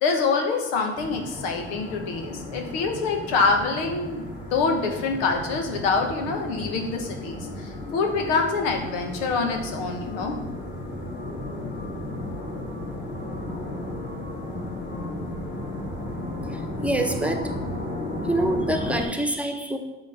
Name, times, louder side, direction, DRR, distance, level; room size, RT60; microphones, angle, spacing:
voice 1, 0.0-4.2 4.5-10.4, left 4 dB, 85° left, 4 dB, 1.4 m, -25 dB
sound 1, 0.9-19.0, left 1 dB, 30° left, 3.4 m, -34 dB
voice 2, 16.8-17.5 18.3-19.8, right 1 dB, 5° right, 4 dB, 1.2 m, -25 dB
8.1 x 6.2 x 5.8 m, 1.1 s
supercardioid pair, 85°, 29 cm